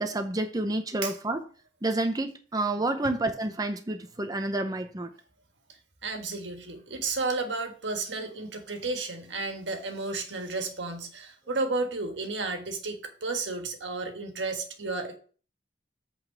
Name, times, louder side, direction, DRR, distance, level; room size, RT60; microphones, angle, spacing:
voice 1, 0.0-1.4 1.8-5.1, right 2 dB, 20° right, 0.6 m, -29 dB
voice 2, 6.0-15.2, right 3 dB, 85° right, 1.6 m, -32 dB
8.2 x 4.0 x 6.0 m
head